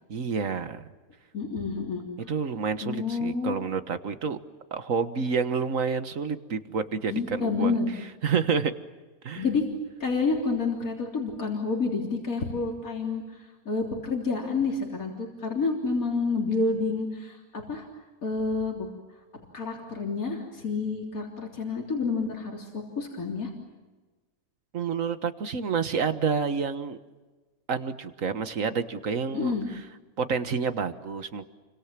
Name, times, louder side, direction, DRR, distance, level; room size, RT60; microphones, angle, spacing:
voice 1, 0.1-0.9 2.3-4.4 4.7-7.8 8.2-8.7 9.2-9.4 24.7-27.0 27.7-29.5 30.2-31.5, right 5 dB, 65° right, 10 dB, 1.8 m, -29 dB
voice 2, 1.3-2.0 2.8-3.6 7.1-7.9 9.4-9.6 10.0-17.9 18.2-18.9 19.5-23.5 29.3-29.6, left 4 dB, 75° left, -1 dB, 4.0 m, -29 dB
30.0 x 25.0 x 7.5 m, 1.2 s
omnidirectional pair, 1.5 m